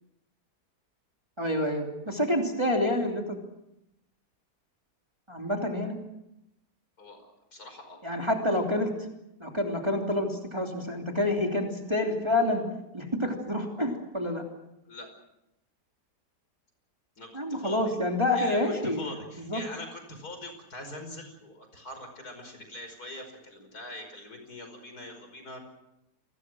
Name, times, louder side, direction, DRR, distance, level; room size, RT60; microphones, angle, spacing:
voice 1, 1.4-3.4 5.3-6.0 8.0-8.9 9.4-12.6 12.9-14.4 17.3-19.6, left 1 dB, 15° right, 1 dB, 3.1 m, -28 dB
voice 2, 7.0-8.0 14.9-15.1 17.2-17.8 18.3-25.6, left 1 dB, 65° left, 6 dB, 5.8 m, -43 dB
28.5 x 21.5 x 6.3 m, 0.85 s
omnidirectional pair, 1.8 m